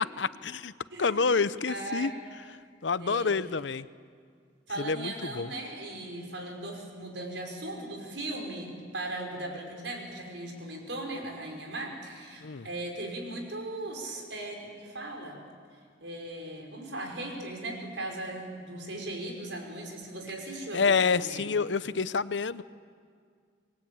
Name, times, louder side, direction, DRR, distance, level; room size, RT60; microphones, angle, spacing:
voice 1, 0.2-0.7 1.0-2.1 2.8-3.9 4.8-5.5 12.4-12.7 20.7-22.6, left 5 dB, 85° left, 15 dB, 0.7 m, -28 dB
voice 2, 0.9-2.1 3.0-3.4 4.7-15.4 16.0-21.5, right 1 dB, 90° right, 2 dB, 5.7 m, -38 dB
28.0 x 22.0 x 8.8 m, 2.1 s
head